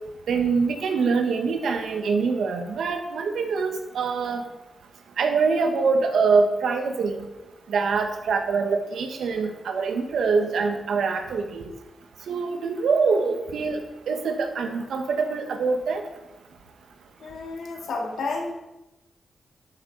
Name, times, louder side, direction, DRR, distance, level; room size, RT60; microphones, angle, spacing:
voice 1, 0.3-4.4 5.2-7.3 7.7-11.6 12.3-16.0, right 4 dB, 85° right, 5 dB, 1.4 m, -24 dB
voice 2, 17.2-18.5, left 3 dB, 80° left, 1 dB, 2.1 m, -31 dB
11.5 x 8.5 x 4.1 m, 0.98 s
cardioid pair, 80°, 0 cm